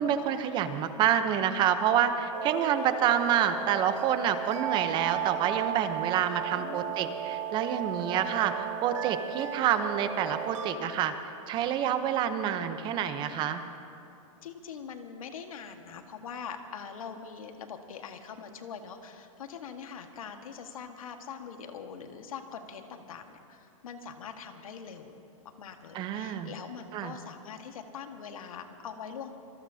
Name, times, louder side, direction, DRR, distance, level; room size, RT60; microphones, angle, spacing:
voice 1, 0.0-11.1 11.5-13.6 25.9-26.5 26.9-27.1, right 9 dB, 25° right, 9 dB, 0.8 m, -28 dB
sound 1, 2.3-10.7, right 9 dB, 60° right, 1.4 m, -35 dB
voice 2, 6.5-7.0 11.5-11.8 14.4-25.2 25.6-29.3, left 6 dB, 80° left, 5 dB, 1.6 m, -43 dB
25.5 x 20.0 x 2.8 m, 2.6 s
hypercardioid pair, 150°, 17 cm